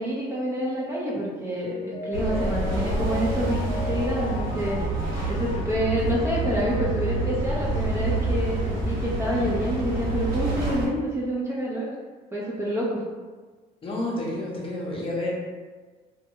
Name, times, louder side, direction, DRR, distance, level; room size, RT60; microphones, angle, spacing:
voice 1, 0.0-4.8 5.3-11.9 12.3-13.0, equal, 15° right, -6 dB, 0.4 m, -28 dB
Mallet percussion, 1.6-7.1 7.5-7.6, left 1 dB, 70° left, 0.6 m, -36 dB
sound 1, 2.1-10.9, right 2 dB, 65° right, 0.8 m, -27 dB
voice 2, 13.8-15.3, left 1 dB, 35° left, -4 dB, 0.7 m, -29 dB
2.2 x 2.1 x 2.8 m, 1.4 s
cardioid pair, 110°, 17 cm